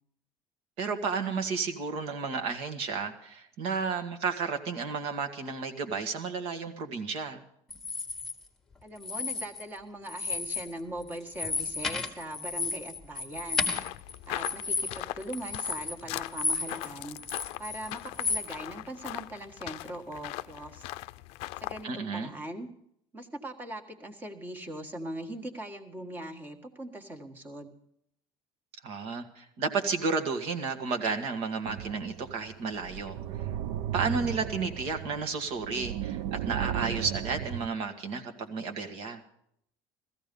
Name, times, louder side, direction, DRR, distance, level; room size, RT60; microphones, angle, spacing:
voice 1, 0.8-7.4 21.8-22.3 28.8-33.2 33.9-39.2, right 5 dB, 60° right, 5 dB, 1.9 m, -32 dB
sound 1, 7.7-8.3 9.0-9.8 10.1-10.7 11.0-16.9 17.2-18.5, left 4 dB, 5° left, 1.6 m, -33 dB
voice 2, 8.8-13.7 14.3-17.2 17.6-20.9 21.6-22.7 23.1-27.7, right 1 dB, 15° right, 5 dB, 1.6 m, -40 dB
sound 2, 13.7-21.8, left 18 dB, 65° left, 0.5 m, -40 dB
sound 3, 31.6-37.7, right 11 dB, 80° right, 0.6 m, -35 dB
16.0 x 14.5 x 5.4 m, 0.70 s
cardioid pair, 155°, 11 cm